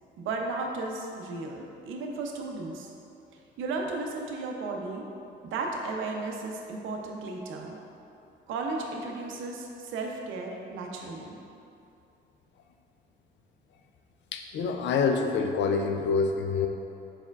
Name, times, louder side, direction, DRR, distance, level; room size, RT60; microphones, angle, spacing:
voice 1, 0.2-2.9 3.6-5.0 5.4-7.8 8.5-11.4, right 3 dB, 85° right, 1 dB, 0.5 m, -34 dB
voice 2, 14.3-16.7, left 5 dB, 65° left, 5 dB, 0.4 m, -26 dB
4.4 x 4.3 x 2.3 m, 2.7 s
cardioid pair, 90°, 20 cm